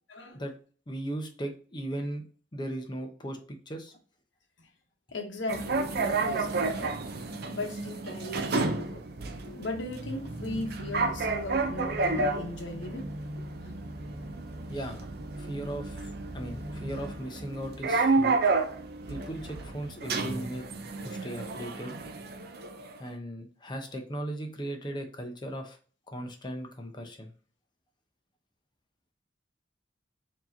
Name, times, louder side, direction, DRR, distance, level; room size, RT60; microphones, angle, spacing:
voice 1, 0.1-0.4 5.1-7.0 7.5-9.0 9.3-13.1, left 2 dB, 80° left, 1.0 m, -37 dB
voice 2, 0.9-2.2 2.5-4.0 14.7-15.0 15.4-18.4 19.1-20.6 21.0-21.9 23.0-25.8 26.1-27.3, right 1 dB, 25° left, 0.7 m, -37 dB
sound 1, 5.5-23.0, right 3 dB, 55° right, 0.5 m, -31 dB
4.5 x 2.9 x 2.6 m
head